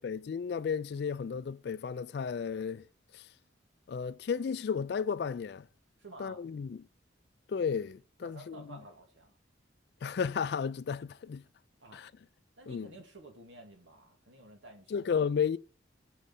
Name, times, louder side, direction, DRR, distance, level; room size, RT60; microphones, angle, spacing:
voice 1, 0.0-2.8 3.1-3.3 3.9-5.6 6.2-6.8 7.5-8.8 10.0-11.4 11.9-12.1 12.7-12.9 14.9-15.6, left 6 dB, 60° left, 0.3 m, -33 dB
voice 2, 6.0-6.4 8.2-9.4 11.8-12.0 12.6-15.3, right 2 dB, 85° right, 2.1 m, -52 dB
6.4 x 6.4 x 7.2 m
head